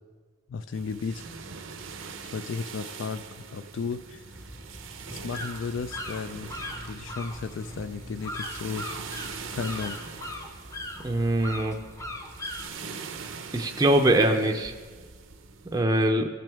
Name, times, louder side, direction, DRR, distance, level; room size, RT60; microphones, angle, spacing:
voice 1, 0.5-1.3 2.2-3.2 3.5-4.3 5.1-6.5 6.8-8.9 9.5-10.0, left 5 dB, 70° left, 10 dB, 0.4 m, -34 dB
sound 1, 0.7-15.8, right 5 dB, 90° right, 0.7 m, -43 dB
sound 2, 4.3-12.7, left 1 dB, 15° left, 0.7 m, -39 dB
voice 2, 11.0-11.8 13.5-14.7 15.7-16.3, right 1 dB, 20° right, 3 dB, 0.5 m, -22 dB
18.0 x 6.0 x 3.5 m, 1.6 s
head